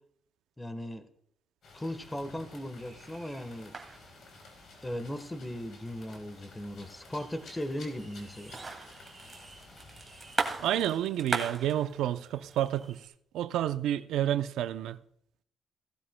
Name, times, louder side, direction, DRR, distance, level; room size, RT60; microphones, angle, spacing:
voice 1, 0.6-1.1 1.7-3.7 4.8-8.5, left 1 dB, 10° left, 1.2 m, -38 dB
sound 1, 1.6-10.9, left 3 dB, 65° left, 3.7 m, -53 dB
sound 2, 2.8-13.1, right 3 dB, 25° right, 2.3 m, -41 dB
voice 2, 10.6-13.0 13.3-15.0, right 11 dB, 85° right, 0.5 m, -29 dB
17.5 x 12.5 x 2.2 m
cardioid pair, 90°, 0 cm